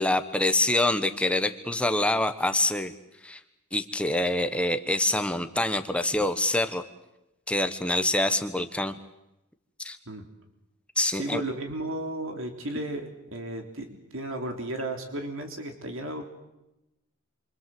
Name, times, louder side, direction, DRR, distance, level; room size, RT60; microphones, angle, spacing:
voice 1, 0.0-2.9 3.2-3.4 3.7-6.8 7.5-8.9 9.8-10.0 11.0-11.4, left 1 dB, 5° left, 8 dB, 1.1 m, -25 dB
voice 2, 11.1-16.3, right 1 dB, 60° right, 4 dB, 3.3 m, -34 dB
28.0 x 24.5 x 7.8 m, 0.92 s
head